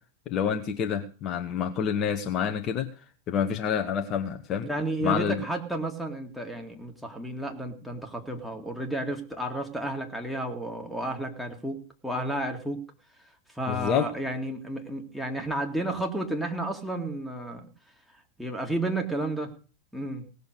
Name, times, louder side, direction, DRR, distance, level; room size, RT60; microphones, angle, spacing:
voice 1, 0.3-2.9 3.3-4.7 5.0-5.4 13.7-14.1, left 8 dB, 35° left, 6 dB, 0.9 m, -28 dB
voice 2, 4.6-12.8 13.5-17.7 18.4-19.5 19.9-20.3, right 1 dB, ahead, 3 dB, 2.2 m, -32 dB
18.0 x 6.7 x 6.5 m, 0.38 s
figure-of-eight pair, 90°, 0 cm